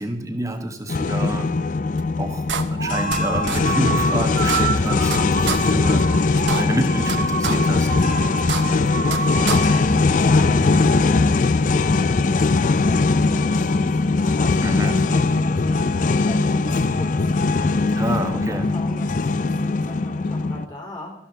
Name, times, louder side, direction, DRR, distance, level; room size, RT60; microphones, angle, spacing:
voice 1, 0.0-1.5 2.2-6.1 6.6-7.9 14.6-15.0 18.0-18.7, right 1 dB, 20° right, 6 dB, 1.1 m, -28 dB
sound 1, 0.9-20.7, left 3 dB, 45° left, 0.4 m, -20 dB
sound 2, 2.0-2.1 2.5-3.2 3.5-3.6 4.0-4.1 4.4-5.2 5.5-5.6 6.0-6.1 6.4-7.2 7.4-7.5 8.0-8.1 8.4-9.2 9.5-9.6, right 6 dB, 90° right, 0.9 m, -26 dB
sound 3, 2.7-10.0, right 4 dB, 70° right, 1.6 m, -28 dB
voice 2, 8.1-21.1, left 1 dB, 25° left, -1 dB, 3.7 m, -39 dB
12.5 x 12.0 x 4.0 m, 0.81 s
head